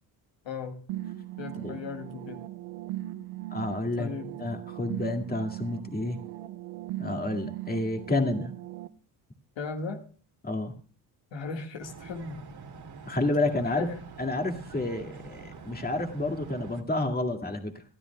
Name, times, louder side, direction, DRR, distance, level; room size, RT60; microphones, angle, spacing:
voice 1, 0.4-0.8 1.4-2.4 4.0-4.3 9.6-10.0 11.3-12.4 13.6-14.0, left 4 dB, 65° left, 4 dB, 1.8 m, -37 dB
sound 1, 0.9-8.9, right 15 dB, 85° right, 0.8 m, -39 dB
voice 2, 3.5-4.1 4.4-6.2 7.0-8.5 10.4-10.7 13.1-13.9 14.2-17.8, left 2 dB, 20° left, 4 dB, 2.1 m, -30 dB
sound 2, 11.8-16.8, right 4 dB, 50° right, 2.4 m, -46 dB
20.5 x 12.5 x 2.2 m, 0.40 s
supercardioid pair, 60°, 48 cm